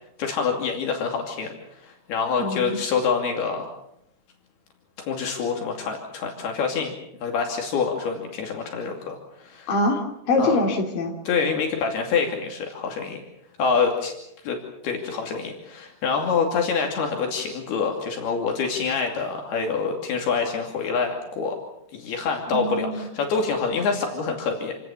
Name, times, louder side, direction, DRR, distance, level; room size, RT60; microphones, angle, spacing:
voice 1, 0.2-1.5 1.8-3.7 5.1-6.9 7.2-9.2 9.4-9.7 10.4-10.6 11.3-13.2 13.6-14.1 14.4-21.6 21.9-24.8, left 5 dB, 75° left, 2 dB, 4.6 m, -26 dB
voice 2, 2.4-2.8 9.7-11.1 22.5-23.1, left 2 dB, 60° left, 2 dB, 4.9 m, -24 dB
28.0 x 18.5 x 7.3 m, 0.79 s
omnidirectional pair, 4.6 m